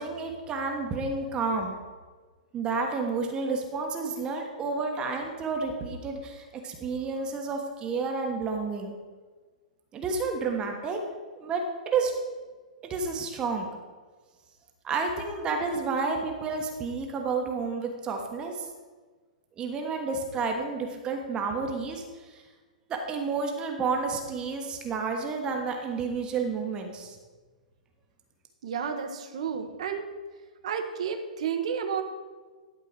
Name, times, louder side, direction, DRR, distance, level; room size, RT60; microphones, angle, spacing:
voice 1, 0.0-1.8 2.5-9.0 9.9-11.0 11.3-12.1 12.8-13.7 14.8-18.7 19.6-22.4 22.9-27.2, right 4 dB, 20° right, 2 dB, 1.2 m, -30 dB
voice 2, 28.6-30.1 30.6-32.0, right 7 dB, 55° right, 7 dB, 1.1 m, -31 dB
12.0 x 4.5 x 6.3 m, 1.4 s
figure-of-eight pair, 110°, 4 cm